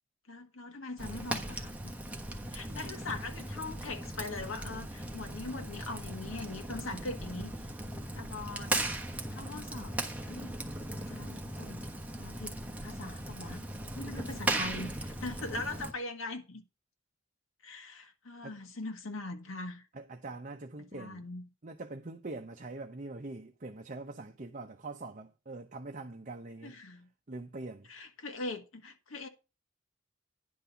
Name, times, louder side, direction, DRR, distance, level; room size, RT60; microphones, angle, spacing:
voice 1, 0.3-1.9 2.5-7.5 8.1-8.7 9.3-10.0 10.2-10.5 11.1-11.8 12.2-13.6 13.9-16.6 17.6-19.8 20.9-21.5 26.6-27.1 27.9-29.3, left 2 dB, 80° left, 1.6 m, -41 dB
Fire, 1.0-15.9, right 1 dB, 5° right, 1.2 m, -38 dB
voice 2, 2.7-3.0 18.4-18.6 19.9-21.2 21.6-26.7 27.3-27.9, right 2 dB, 40° right, 0.7 m, -43 dB
10.5 x 4.1 x 6.9 m
head